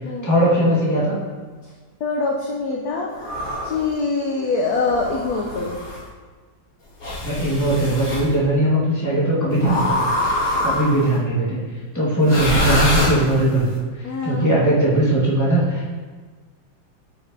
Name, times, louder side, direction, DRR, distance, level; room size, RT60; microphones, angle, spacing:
voice 1, 0.2-1.2 7.2-10.1 10.6-15.9, right 1 dB, 10° left, -7 dB, 1.4 m, -19 dB
voice 2, 2.0-5.8 14.0-14.6, left 3 dB, 70° left, 0 dB, 0.9 m, -24 dB
sound 1, 3.2-3.9 4.8-6.0 7.0-8.3 9.6-11.1 12.2-13.6, left 1 dB, 50° left, 2.4 m, -24 dB
9.6 x 5.0 x 2.7 m, 1.5 s
omnidirectional pair, 2.2 m